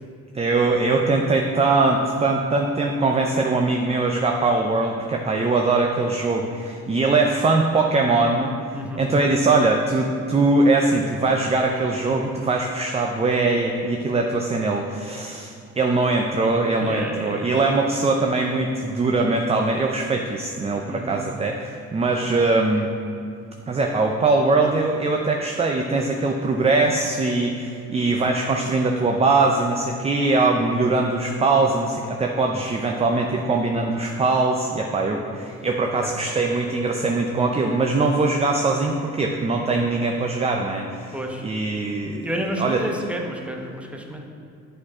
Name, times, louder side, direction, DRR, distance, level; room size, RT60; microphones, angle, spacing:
voice 1, 0.3-8.5 9.0-22.9 23.7-41.1 41.4-42.3 42.6-42.8, right 3 dB, 20° right, 2 dB, 0.5 m, -21 dB
voice 2, 8.7-9.1 16.8-17.6 20.9-21.3 30.5-30.8 35.9-36.1 41.1-41.4 42.2-44.2, right 1 dB, 5° right, 1 dB, 0.9 m, -31 dB
7.4 x 4.5 x 4.8 m, 2.5 s
cardioid pair, 90°, 30 cm